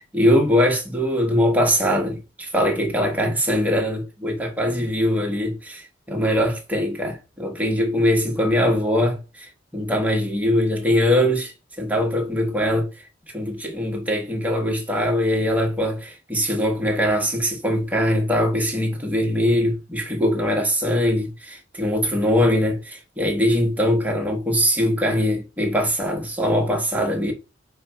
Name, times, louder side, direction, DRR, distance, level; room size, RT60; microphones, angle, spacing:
voice 1, 0.0-12.9 13.3-27.3, equal, 10° right, 1.1 m, -22 dB
4.9 x 2.2 x 4.4 m
head